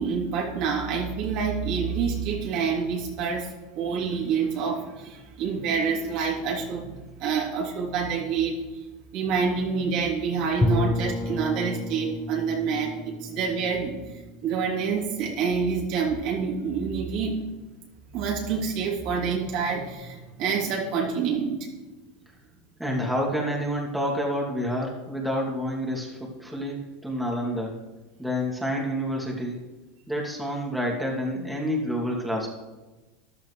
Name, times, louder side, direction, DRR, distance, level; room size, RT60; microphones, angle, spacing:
voice 1, 0.0-8.6 9.1-14.0 14.4-17.4 18.1-21.6, right 5 dB, 55° right, -1 dB, 2.9 m, -27 dB
Bowed string instrument, 10.6-15.4, left 2 dB, 15° left, 0.9 m, -31 dB
voice 2, 22.8-27.8 28.2-29.6 30.1-32.5, equal, 5° right, -3 dB, 2.5 m, -28 dB
14.0 x 11.5 x 3.2 m, 1.2 s
supercardioid pair, 120°, 0 cm